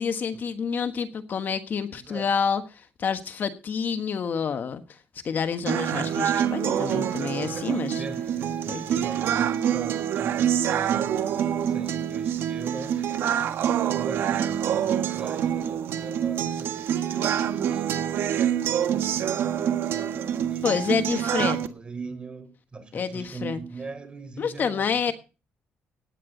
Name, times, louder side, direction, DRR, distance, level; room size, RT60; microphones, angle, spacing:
voice 1, 0.0-5.0 5.2-8.0 8.7-9.0 20.6-21.6 22.9-23.6 24.4-25.1, left 6 dB, 50° left, 1.4 m, -28 dB
voice 2, 1.9-2.3 7.5-13.1 13.9-18.9 20.5-24.9, right 4 dB, 25° right, 4.8 m, -41 dB
sound 1, 5.7-21.7, right 9 dB, 70° right, 1.5 m, -26 dB
17.5 x 9.8 x 4.0 m
cardioid pair, 105°, 4 cm